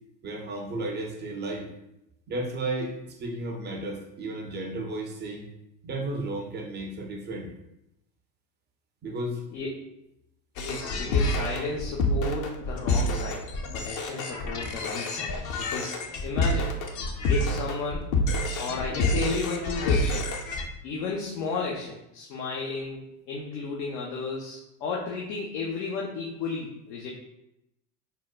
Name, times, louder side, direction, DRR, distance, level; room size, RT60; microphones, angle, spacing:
voice 1, 0.2-1.7 2.3-5.5 5.8-7.5 9.0-9.4, right 2 dB, 25° right, 2 dB, 0.3 m, -33 dB
voice 2, 10.6-13.5 13.7-16.8 17.3-18.1 18.6-20.3 20.8-27.1, left 4 dB, 80° left, -3 dB, 0.7 m, -33 dB
sound 1, 10.6-20.7, left 2 dB, 40° left, 0.5 m, -28 dB
3.7 x 2.0 x 2.2 m, 0.85 s
hypercardioid pair, 85°, 49 cm